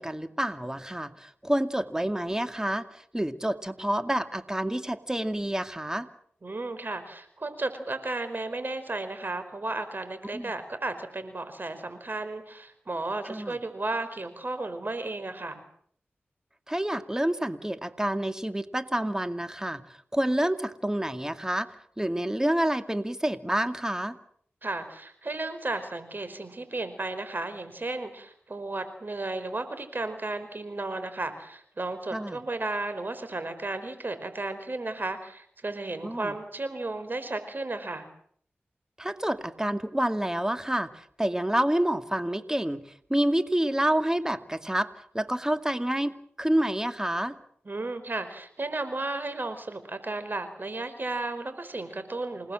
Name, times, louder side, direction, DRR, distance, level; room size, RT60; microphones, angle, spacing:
voice 1, 0.0-6.1 10.3-10.5 13.2-13.6 16.7-19.8 20.1-21.7 22.0-24.2 32.1-32.4 36.0-36.3 39.0-42.8 43.1-44.9 45.1-47.3, right 1 dB, 15° right, 9 dB, 2.3 m, -28 dB
voice 2, 6.4-15.6 24.6-38.1 47.6-52.5, right 2 dB, 50° right, 10 dB, 5.0 m, -34 dB
28.5 x 19.0 x 7.8 m, 0.62 s
cardioid pair, 45°, 4 cm